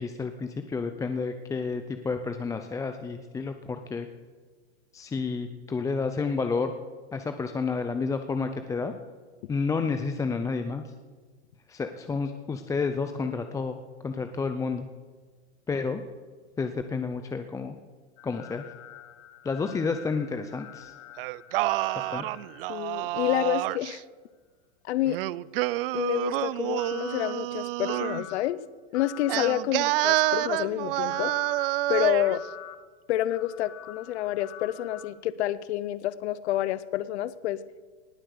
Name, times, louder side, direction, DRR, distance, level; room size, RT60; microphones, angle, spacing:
voice 1, 0.0-4.1 4.9-6.7 7.1-8.9 9.5-10.8 11.7-13.8 14.0-14.8 15.7-16.0 16.6-17.8 18.2-18.6 19.4-20.9 22.0-22.3, left 4 dB, 10° left, 8 dB, 0.5 m, -30 dB
sound 1, 18.2-23.5 26.8-27.3 27.9-28.4 28.9-29.5 30.0-30.6 31.1-31.7 32.2-32.8 33.3-35.1, left 13 dB, 45° left, 1.3 m, -45 dB
Singing, 21.2-24.0 25.1-28.3 29.3-32.4, right 18 dB, 60° right, 0.5 m, -28 dB
voice 2, 22.7-24.0 24.8-25.2 25.9-28.6 28.9-31.3 31.9-32.4 33.1-37.6, left 13 dB, 75° left, 17 dB, 0.8 m, -28 dB
19.0 x 7.8 x 6.6 m, 1.5 s
supercardioid pair, 130°, 34 cm